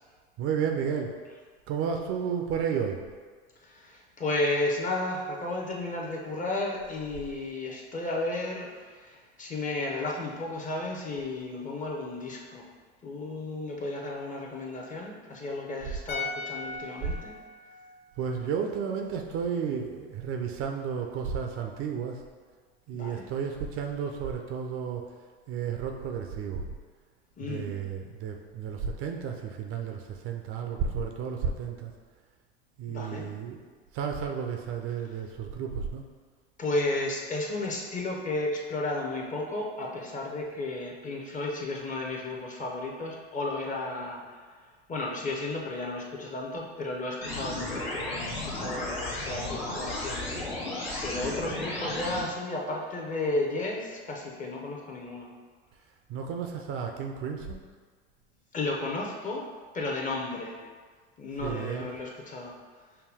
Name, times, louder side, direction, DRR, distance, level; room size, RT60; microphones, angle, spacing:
voice 1, 0.4-1.1 1.7-3.0 17.0-17.1 18.2-22.2 22.9-25.1 25.5-26.7 27.4-31.9 32.8-33.6 33.9-36.0 56.1-57.6 61.4-61.9, right 7 dB, 45° right, 3 dB, 0.5 m, -32 dB
voice 2, 3.6-12.7 13.0-17.3 22.9-23.3 27.4-27.8 32.9-33.3 36.6-44.4 44.9-55.3 58.5-59.4 59.7-60.6 61.2-62.5, left 2 dB, 25° left, -1 dB, 0.8 m, -33 dB
sound 1, 16.1-19.3 19.6-19.7, left 3 dB, 55° left, 1.0 m, -40 dB
sound 2, 47.2-52.2, left 2 dB, 70° left, 1.3 m, -34 dB
5.6 x 2.2 x 3.4 m, 1.5 s
hypercardioid pair, 75°, 32 cm